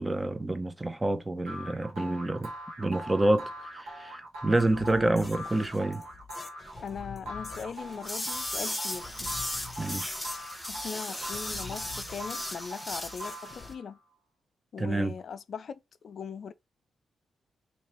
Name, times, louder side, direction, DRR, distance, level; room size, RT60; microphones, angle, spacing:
voice 1, 0.0-2.5 2.8-6.0 9.8-10.1 11.1-11.3 11.6-11.8 14.8-15.1, right 2 dB, 25° right, 0.7 m, -28 dB
sound 1, 1.5-14.0, equal, 90° right, 1.1 m, -42 dB
sound 2, 4.6-13.7, left 4 dB, 35° left, 0.8 m, -47 dB
voice 2, 6.8-9.3 10.7-14.0 14.7-15.8 16.0-16.5, left 6 dB, 65° left, 0.3 m, -39 dB
sound 3, 8.0-13.7, left 1 dB, 5° left, 1.0 m, -36 dB
2.9 x 2.8 x 4.2 m
supercardioid pair, 50°, 0 cm